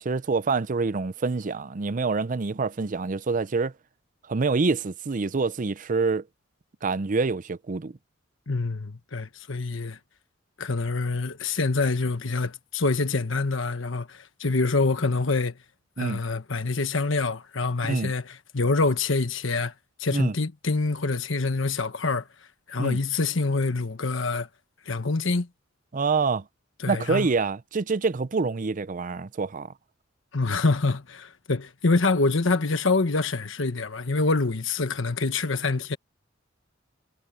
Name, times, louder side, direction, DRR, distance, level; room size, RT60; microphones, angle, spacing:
voice 1, 0.0-3.7 4.3-6.2 6.8-7.9 16.0-16.2 17.8-18.1 20.1-20.3 22.8-23.0 25.9-26.4 26.9-29.7, right 4 dB, 40° right, 0.6 m, -26 dB
voice 2, 8.5-10.0 10.6-15.5 16.0-19.7 20.0-22.3 22.7-24.5 24.8-25.5 26.8-27.3 30.3-36.0, left 3 dB, 70° left, 1.3 m, -26 dB
head